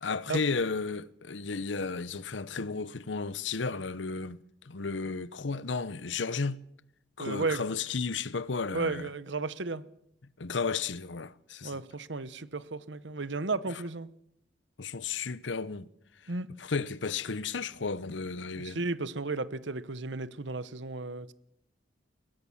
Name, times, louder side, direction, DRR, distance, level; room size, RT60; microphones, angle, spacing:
voice 1, 0.0-4.4 4.6-6.6 7.2-9.1 10.4-11.8 14.8-15.9 16.6-18.8, left 4 dB, 75° left, 0.8 m, -33 dB
voice 2, 7.2-7.6 8.7-9.8 11.6-14.1 16.3-16.5 18.5-21.3, right 3 dB, 75° right, 1.1 m, -34 dB
22.5 x 19.0 x 7.3 m
head